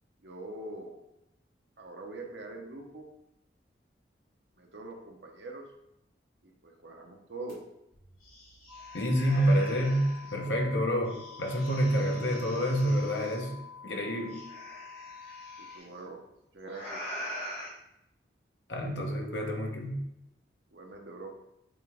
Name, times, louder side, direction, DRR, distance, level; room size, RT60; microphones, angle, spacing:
voice 1, 0.2-1.0 1.8-3.1 4.6-5.6 6.4-7.6 15.7-16.2 16.5-17.1 20.7-21.3, right 2 dB, 75° right, 2 dB, 1.0 m, -43 dB
sound 1, 7.5-7.6 7.9-10.3 11.0-13.4 14.3-15.8 16.6-17.7, equal, 50° left, 2.0 m, -44 dB
sound 2, 8.7-15.8, left 5 dB, 30° right, 1.9 m, -48 dB
voice 2, 8.9-13.5 13.8-14.4 18.7-20.0, equal, 75° left, 0 dB, 1.2 m, -28 dB
8.1 x 3.4 x 3.5 m, 0.83 s
head